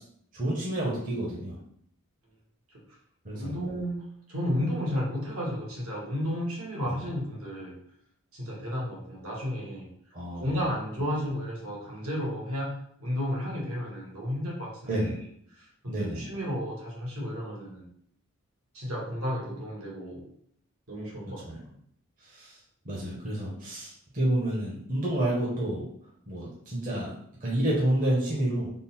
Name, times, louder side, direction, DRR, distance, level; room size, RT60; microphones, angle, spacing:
voice 1, 0.3-1.6 3.2-3.6 6.9-7.0 10.1-10.5 14.9-15.1 15.9-16.3 21.5-21.6 22.2-22.6 22.8-25.8 26.3-27.1 27.4-28.7, right 1 dB, 40° right, -5 dB, 0.8 m, -29 dB
voice 2, 3.3-7.7 8.3-9.9 10.3-15.1 15.6-17.9 18.7-20.2 20.9-21.7, equal, 75° right, -4 dB, 1.2 m, -33 dB
3.7 x 2.0 x 4.1 m, 0.67 s
head